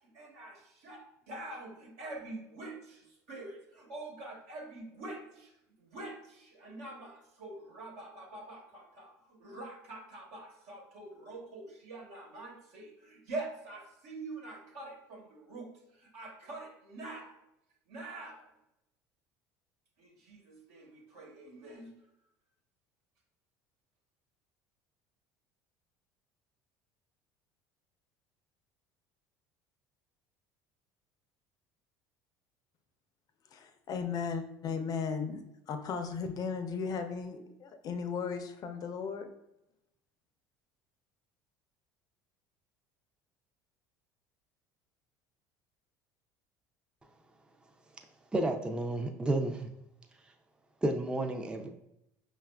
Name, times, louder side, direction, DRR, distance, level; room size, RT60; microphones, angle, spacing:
voice 1, 0.1-5.5 5.8-17.4 17.9-18.5 20.0-21.9, right 2 dB, 80° right, -2 dB, 1.2 m, -45 dB
voice 2, 33.5-35.4 35.7-39.3, left 5 dB, 45° left, 7 dB, 0.5 m, -36 dB
voice 3, 48.3-49.7 50.8-51.7, right 1 dB, 10° right, 5 dB, 0.4 m, -31 dB
5.3 x 2.3 x 2.3 m, 0.84 s
supercardioid pair, 80°, 9 cm